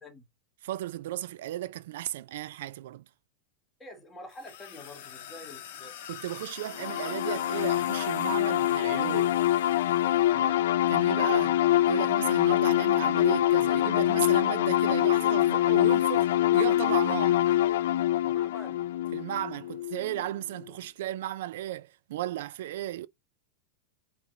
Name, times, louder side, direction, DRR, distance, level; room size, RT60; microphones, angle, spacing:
voice 1, 0.6-3.0 6.1-9.3 10.9-17.4 19.1-23.1, right 13 dB, 60° right, 0.3 m, -35 dB
voice 2, 3.8-5.9 10.3-10.7 18.2-18.9, left 2 dB, 10° left, 1.3 m, -46 dB
sound 1, 4.3-10.3, left 10 dB, 55° left, 1.4 m, -45 dB
sound 2, 6.8-20.2, left 13 dB, 70° left, 0.3 m, -25 dB
8.1 x 3.2 x 3.7 m
supercardioid pair, 180°, 0 cm